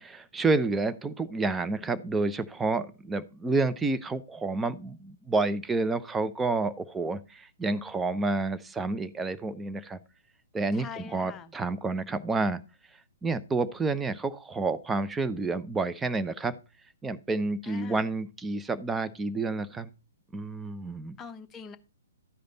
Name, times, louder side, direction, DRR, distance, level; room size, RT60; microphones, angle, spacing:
voice 1, 0.0-10.0 10.5-12.6 13.2-16.5 17.0-19.9 20.3-21.2, right 3 dB, 10° right, 13 dB, 0.7 m, -29 dB
voice 2, 10.7-11.5 17.6-18.1 21.2-21.8, left 6 dB, 15° left, 7 dB, 0.9 m, -43 dB
12.5 x 5.1 x 4.0 m, 0.32 s
figure-of-eight pair, 125°, 0 cm